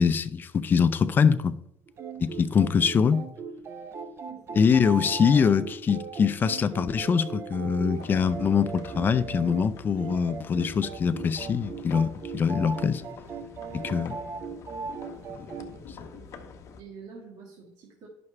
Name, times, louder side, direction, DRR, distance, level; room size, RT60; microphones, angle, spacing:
voice 1, 0.0-1.5 2.2-3.2 4.5-13.0 13.7-14.2, left 6 dB, 30° left, 0.4 m, -23 dB
sound 1, 1.9-15.7, right 5 dB, 35° right, 0.7 m, -38 dB
voice 2, 4.3-4.6 15.5-16.5 16.8-18.1, right 5 dB, 55° right, 1.9 m, -48 dB
sound 2, 7.9-16.8, left 5 dB, 45° left, 0.9 m, -46 dB
10.5 x 5.9 x 3.2 m
cardioid pair, 135°, 7 cm